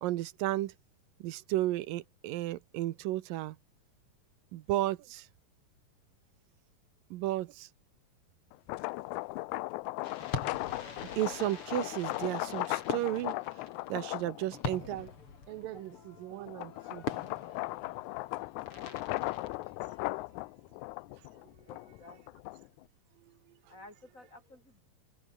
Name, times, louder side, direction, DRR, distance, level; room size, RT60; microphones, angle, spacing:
voice 1, 0.0-0.7 1.2-3.6 4.5-5.3 7.1-7.7 11.2-13.3 13.9-15.1 15.5-17.0, right 15 dB, 85° right, 2.7 m, -34 dB
sound 1, 8.5-15.1 15.6-22.8, left 21 dB, 85° left, 1.7 m, -38 dB
Fireworks, 10.0-20.2, left 5 dB, 40° left, 4.0 m, -43 dB
voice 2, 21.6-22.2 23.7-24.8, left 1 dB, 20° left, 8.0 m, -54 dB
open air
omnidirectional pair, 3.9 m